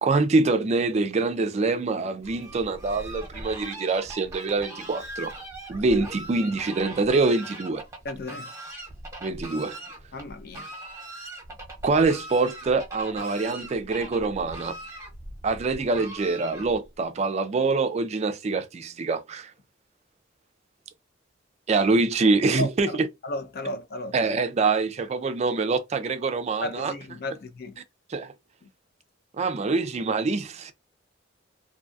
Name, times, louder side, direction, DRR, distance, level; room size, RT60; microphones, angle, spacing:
voice 1, 0.0-5.3 5.7-7.8 9.2-9.8 11.8-14.8 15.4-19.5 21.7-23.1 24.1-26.9 28.1-28.3 29.4-30.7, right 3 dB, 35° right, 0.4 m, -25 dB
Fowl, 2.2-17.0, right 1 dB, 15° right, 0.9 m, -41 dB
voice 2, 8.0-8.5 10.1-10.7 22.2-22.3 22.6-23.0 23.2-24.1 26.6-27.8, left 1 dB, 55° left, 0.4 m, -34 dB
2.6 x 2.2 x 2.6 m
head